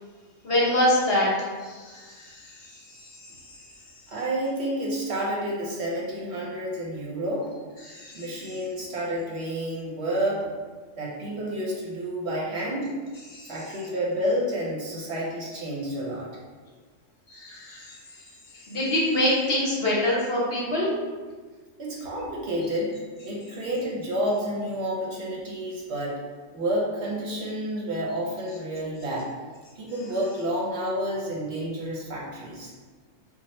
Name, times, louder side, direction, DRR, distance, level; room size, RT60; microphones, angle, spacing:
voice 1, 0.4-3.6 7.8-8.6 13.3-13.8 17.3-20.9, left 1 dB, 55° left, -5 dB, 1.0 m, -27 dB
voice 2, 4.1-7.5 8.1-10.5 11.0-12.9 13.5-16.3 21.8-22.9 23.2-26.2 26.5-29.3 29.8-32.7, equal, 60° right, -4 dB, 1.0 m, -29 dB
3.0 x 2.4 x 4.2 m, 1.4 s
omnidirectional pair, 1.3 m